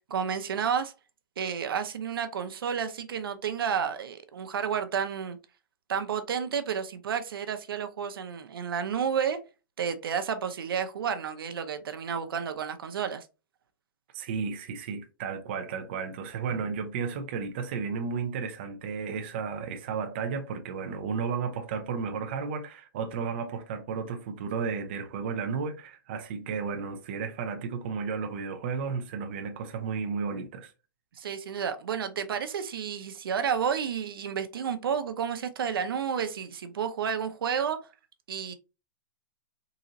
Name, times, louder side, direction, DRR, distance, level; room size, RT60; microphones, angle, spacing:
voice 1, 0.1-0.9 1.4-5.4 5.9-9.4 9.8-13.3 16.5-16.6 31.2-37.8 38.3-38.5, right 7 dB, 85° right, 0.7 m, -31 dB
voice 2, 14.1-30.7, right 5 dB, 30° right, 0.5 m, -33 dB
3.9 x 2.9 x 2.6 m
hypercardioid pair, 175°, 12 cm